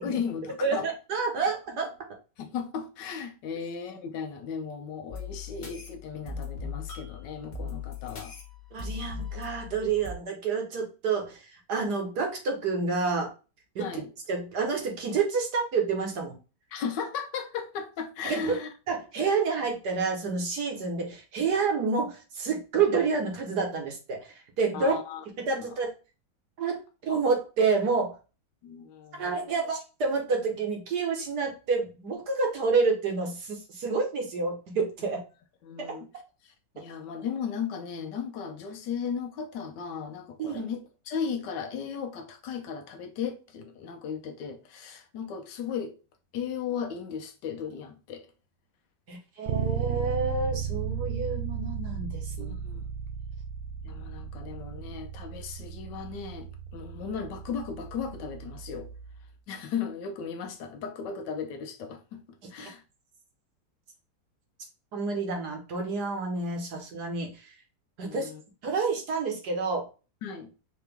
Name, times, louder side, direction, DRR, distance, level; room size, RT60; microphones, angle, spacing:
voice 1, 0.0-0.9 2.4-8.3 13.8-14.1 16.7-18.7 24.7-25.2 25.6-25.7 28.6-29.3 35.6-36.1 36.4-45.9 46.3-48.3 52.4-52.8 53.8-58.9 59.5-62.8 68.0-68.4 70.2-70.5, left 6 dB, 70° left, 1.3 m, -36 dB
voice 2, 0.6-1.9 8.7-11.4 11.7-13.3 13.7-13.8 14.3-16.3 18.2-18.5 18.9-24.9 25.5-25.9 26.6-26.8 27.1-28.2 29.2-35.2 40.4-40.6 49.1-52.6 62.6-62.7 64.9-67.3 68.0-68.3 68.6-69.9, right 4 dB, 60° right, 1.6 m, -28 dB
sound 1, 5.1-10.1, left 5 dB, 50° left, 1.6 m, -39 dB
Bass guitar, 49.5-59.3, right 8 dB, 85° right, 0.7 m, -35 dB
4.9 x 2.9 x 3.4 m
omnidirectional pair, 2.1 m